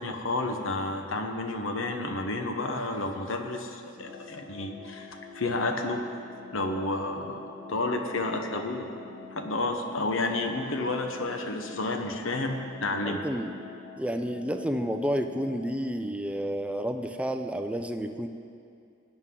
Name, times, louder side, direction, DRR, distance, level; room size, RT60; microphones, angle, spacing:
voice 1, 0.0-5.1 5.3-6.0 6.5-7.4 7.7-8.9 9.3-13.2, left 2 dB, 65° left, 4 dB, 1.0 m, -30 dB
sound 1, 3.9-15.8, left 5 dB, 85° left, 2.2 m, -46 dB
voice 2, 13.0-13.5 14.0-18.3, equal, 5° right, 6 dB, 0.4 m, -30 dB
17.0 x 9.7 x 3.8 m, 2.5 s
head